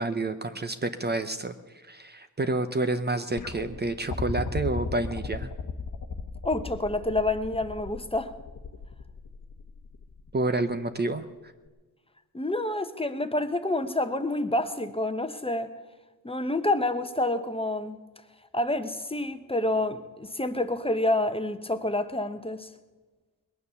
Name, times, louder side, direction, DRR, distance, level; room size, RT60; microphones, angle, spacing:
voice 1, 0.0-5.5 10.3-11.3, right 2 dB, 25° right, 9 dB, 0.7 m, -29 dB
sound 1, 3.4-10.5 11.7-11.8, left 4 dB, 55° left, 1.2 m, -36 dB
voice 2, 6.4-8.3 12.3-15.7 16.2-18.0 18.5-22.7, left 2 dB, 15° left, 9 dB, 0.9 m, -28 dB
21.0 x 9.4 x 6.9 m, 1.3 s
wide cardioid pair, 110°, 37 cm